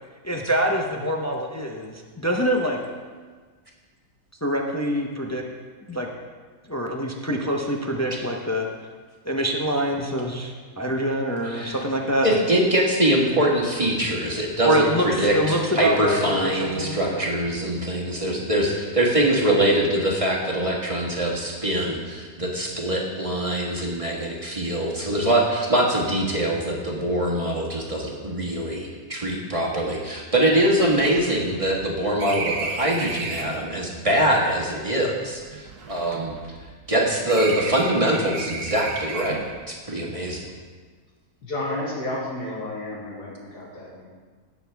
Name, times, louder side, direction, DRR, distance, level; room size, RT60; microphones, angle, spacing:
voice 1, 0.2-2.8 4.4-5.4 5.9-6.1 6.7-8.7 9.3-12.3 14.6-17.2, equal, 20° left, 1 dB, 0.5 m, -25 dB
voice 2, 11.4-11.8 12.2-36.3 36.9-40.4, right 1 dB, 20° right, -3 dB, 1.5 m, -23 dB
sound 1, 29.6-29.7 29.9-30.0 30.4-33.7 34.5-36.9 37.3-39.6, right 4 dB, 70° right, 1.4 m, -34 dB
voice 3, 41.4-44.1, left 1 dB, 85° left, -6 dB, 3.0 m, -31 dB
17.5 x 6.9 x 3.5 m, 1.5 s
omnidirectional pair, 1.7 m